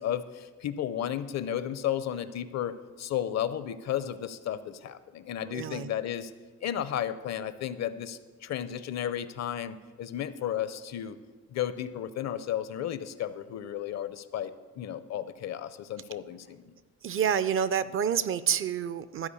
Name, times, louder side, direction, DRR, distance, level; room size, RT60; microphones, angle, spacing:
voice 1, 0.0-6.3 6.6-11.2 11.5-16.7, left 10 dB, 60° left, 14 dB, 0.6 m, -33 dB
voice 2, 5.4-5.9 17.0-19.3, right 8 dB, 45° right, 15 dB, 0.5 m, -28 dB
12.5 x 4.6 x 7.0 m, 1.4 s
cardioid pair, 90°, 30 cm